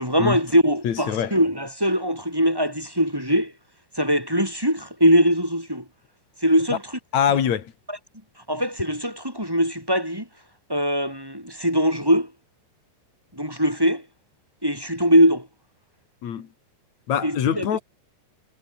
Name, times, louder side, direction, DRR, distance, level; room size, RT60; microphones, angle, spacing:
voice 1, 0.0-3.5 4.0-5.8 6.4-6.8 8.5-10.3 10.7-12.3 13.4-14.0 14.6-15.5 17.2-17.6, equal, 5° right, 5.8 m, -21 dB
voice 2, 0.8-1.4 6.7-6.8 7.1-7.7 16.2-16.5 17.1-17.8, left 8 dB, 50° left, 2.8 m, -23 dB
omnidirectional pair, 5.0 m